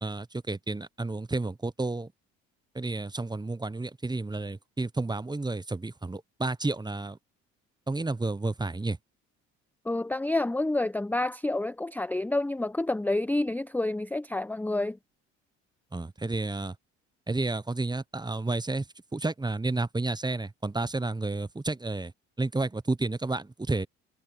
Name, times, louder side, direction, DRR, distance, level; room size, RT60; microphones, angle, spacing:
voice 1, 0.0-2.1 2.7-7.2 7.9-9.0 15.9-16.7 17.3-18.8 19.1-22.1 22.4-23.9, right 2 dB, 10° right, 1.1 m, -31 dB
voice 2, 9.8-15.0, left 2 dB, 5° left, 0.7 m, -28 dB
hypercardioid pair, 60°, 38 cm